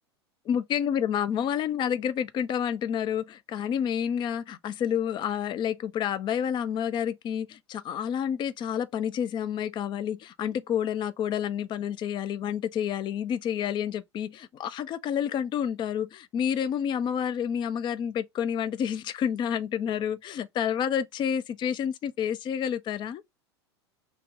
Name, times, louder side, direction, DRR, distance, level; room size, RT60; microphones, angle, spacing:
voice 1, 0.5-23.2, left 8 dB, 35° left, 0.5 m, -29 dB
3.0 x 2.8 x 3.5 m
figure-of-eight pair, 85°, 14 cm